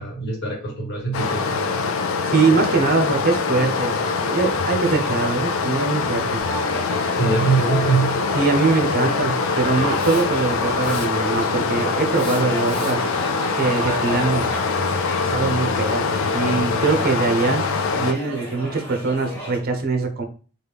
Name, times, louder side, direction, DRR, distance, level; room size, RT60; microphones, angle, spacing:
voice 1, 0.0-1.8 7.1-8.2, right 4 dB, 55° left, -1 dB, 1.2 m, -23 dB
Stream, 1.1-18.1, left 4 dB, 70° left, 0.4 m, -23 dB
voice 2, 2.3-6.4 8.3-13.0 13.5-14.5 15.3-16.1 16.3-17.6 17.9-20.2, right 4 dB, 45° right, 5 dB, 0.6 m, -22 dB
sound 1, 6.4-19.6, right 1 dB, 10° left, 1.2 m, -34 dB
Hiss, 9.9-10.5 10.8-11.4 12.1-13.1, left 3 dB, 25° left, 0.6 m, -38 dB
3.1 x 2.3 x 3.4 m, 0.38 s
head